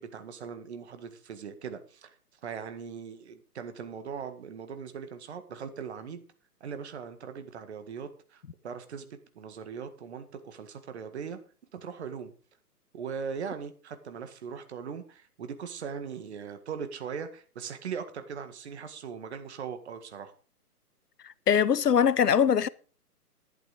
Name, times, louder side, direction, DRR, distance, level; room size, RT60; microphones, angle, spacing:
voice 1, 0.0-2.1 2.4-6.2 6.6-9.1 9.4-11.4 11.7-12.3 12.9-20.3, right 6 dB, 45° right, 1.8 m, -40 dB
voice 2, 21.5-22.7, left 7 dB, 80° left, 0.9 m, -22 dB
11.5 x 11.0 x 5.0 m
figure-of-eight pair, 140°, 47 cm